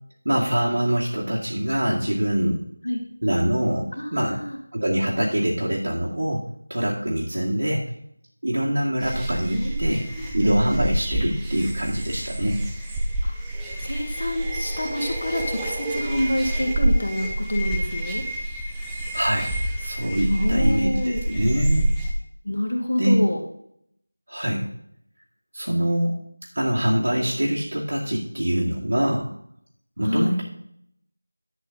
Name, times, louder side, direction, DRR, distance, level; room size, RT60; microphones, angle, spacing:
voice 1, 0.2-2.6 3.2-4.4 4.7-6.4 6.7-7.8 8.4-10.0 10.3-12.6 19.1-19.5 19.8-21.9 23.0-23.1 24.3-24.7 25.5-26.2 26.5-29.3 30.0-30.4, right 1 dB, 60° right, -5 dB, 2.2 m, -24 dB
voice 2, 4.0-4.6 9.5-10.3 13.2-13.3 13.8-18.2 20.3-21.2 22.4-23.4 30.0-30.4, left 1 dB, 55° left, 2 dB, 2.1 m, -27 dB
sound 1, 9.0-22.1, right 1 dB, 5° right, 0.6 m, -27 dB
10.5 x 7.1 x 3.8 m, 0.69 s
figure-of-eight pair, 170°, 0 cm